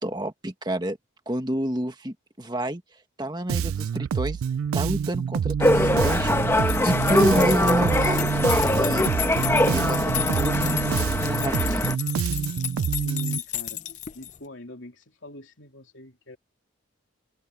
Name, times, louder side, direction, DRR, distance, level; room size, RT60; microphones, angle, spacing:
voice 1, 0.0-1.0 1.2-2.8 3.2-4.4 4.7-9.1 9.5-11.9, right 1 dB, 20° right, 1.6 m, -29 dB
Bass guitar, 3.5-13.4, right 7 dB, 90° right, 0.3 m, -27 dB
sound 1, 5.6-11.9, left 1 dB, 10° left, 1.1 m, -23 dB
sound 2, 6.6-14.4, left 12 dB, 35° left, 0.6 m, -33 dB
voice 2, 12.8-13.8 14.1-16.4, left 1 dB, 65° left, 3.5 m, -43 dB
head